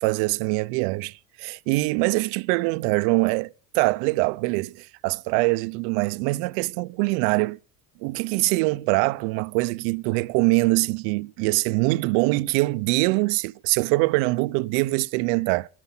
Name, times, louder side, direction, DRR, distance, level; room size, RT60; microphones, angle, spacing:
voice 1, 0.0-7.6 8.0-15.7, right 24 dB, 80° right, 0.6 m, -23 dB
14.5 x 13.5 x 5.5 m
cardioid pair, 125°, 31 cm